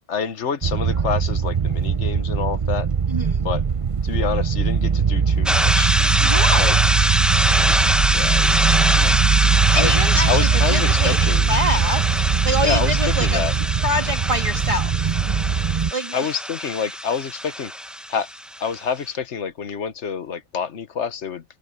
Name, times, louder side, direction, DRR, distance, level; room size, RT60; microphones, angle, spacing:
voice 1, 0.1-2.9 3.4-3.6 4.0-5.9 6.6-6.8 8.1-9.2 9.7-9.9 10.3-11.5 12.6-13.5 16.1-17.7 18.1-18.3 18.6-21.4, left 6 dB, 60° left, 1.4 m, -27 dB
sound 1, 0.6-15.9, right 6 dB, 40° right, 0.4 m, -21 dB
voice 2, 3.1-3.5 6.2-6.7 9.7-12.1 12.4-13.4 13.8-15.1 15.9-16.3, equal, 25° right, 1.8 m, -25 dB
sound 2, 5.5-18.8, equal, ahead, 0.9 m, -24 dB
omnidirectional pair, 1.4 m